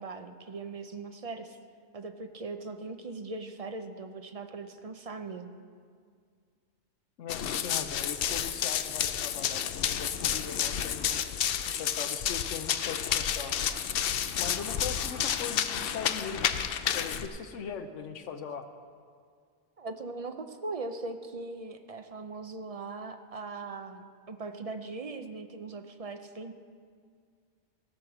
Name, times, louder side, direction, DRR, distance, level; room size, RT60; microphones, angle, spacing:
voice 1, 0.0-1.6 1.9-5.5 19.8-26.5, right 3 dB, 40° right, 7 dB, 0.5 m, -40 dB
voice 2, 7.2-11.3 11.7-13.6 14.4-16.6 16.9-18.6, left 7 dB, 90° left, 7 dB, 1.1 m, -40 dB
Run, 7.3-17.3, left 9 dB, 60° left, 0.7 m, -30 dB
16.5 x 6.5 x 6.0 m, 2.1 s
omnidirectional pair, 1.2 m